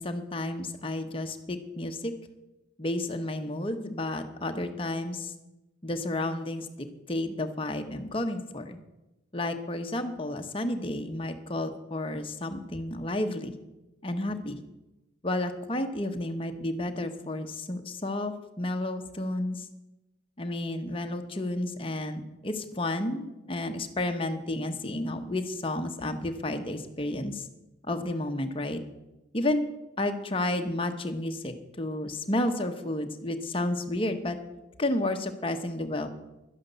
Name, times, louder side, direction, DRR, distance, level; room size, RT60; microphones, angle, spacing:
voice 1, 0.0-2.1 2.8-5.3 5.8-8.8 9.3-13.5 14.0-14.6 15.2-19.6 20.4-27.4 27.9-28.8 29.3-29.6 30.0-34.4 34.8-36.1, left 1 dB, 25° left, 6 dB, 1.0 m, -31 dB
12.0 x 10.5 x 6.8 m, 1.0 s
head